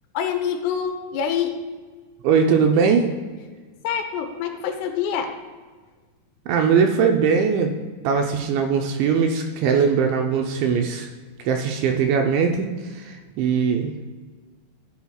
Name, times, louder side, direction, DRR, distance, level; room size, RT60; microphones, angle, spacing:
voice 1, 0.2-1.6 3.8-5.4, left 8 dB, 85° left, 5 dB, 3.7 m, -26 dB
voice 2, 2.2-3.1 6.5-7.7 8.0-11.1 11.5-12.7 12.9-13.9, right 6 dB, 75° right, 3 dB, 2.8 m, -20 dB
16.5 x 10.0 x 2.4 m, 1.4 s
omnidirectional pair, 5.8 m